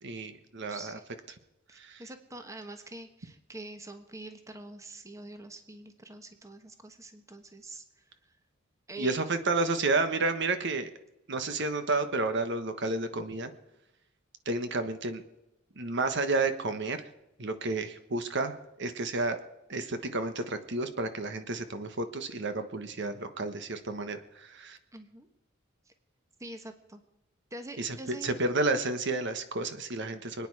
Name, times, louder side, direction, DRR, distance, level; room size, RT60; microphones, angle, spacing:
voice 1, 0.0-1.0 1.8-2.0 9.0-10.9 11.3-13.5 14.4-15.2 15.8-17.1 17.4-19.4 19.7-24.8 27.8-30.5, right 3 dB, 60° right, 9 dB, 1.3 m, -31 dB
voice 2, 0.7-1.0 1.7-8.4 8.9-9.2 24.9-25.3 25.9-26.0 26.4-27.0 27.5-28.4, right 2 dB, 15° right, 7 dB, 1.3 m, -45 dB
25.5 x 9.6 x 4.8 m, 0.92 s
head